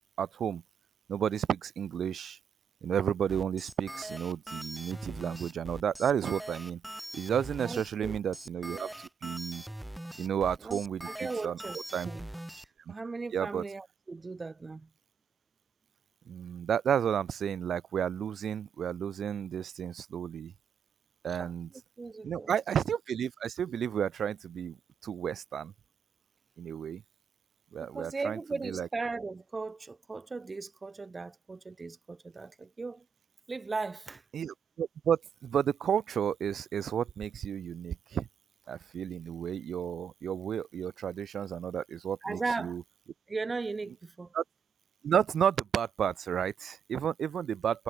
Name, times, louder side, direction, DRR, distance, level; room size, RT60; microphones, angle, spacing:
voice 1, 0.2-0.6 1.1-2.4 2.8-6.8 7.1-9.6 10.2-11.6 11.9-12.1 12.9-13.0 13.3-13.6 16.3-20.5 21.2-21.7 22.2-24.8 25.0-25.7 26.6-27.0 27.7-28.9 34.3-38.3 38.7-42.8 44.3-44.4 45.0-47.8, right 8 dB, 60° right, 0.8 m, -32 dB
sound 1, 3.3-12.6, right 1 dB, 5° right, 1.6 m, -42 dB
voice 2, 7.6-8.2 10.6-12.3 12.9-14.9 21.3-21.5 22.0-22.5 27.9-33.0 33.5-34.2 42.2-42.8 43.3-44.3, right 3 dB, 25° right, 2.3 m, -37 dB
cardioid pair, 90°, 0 cm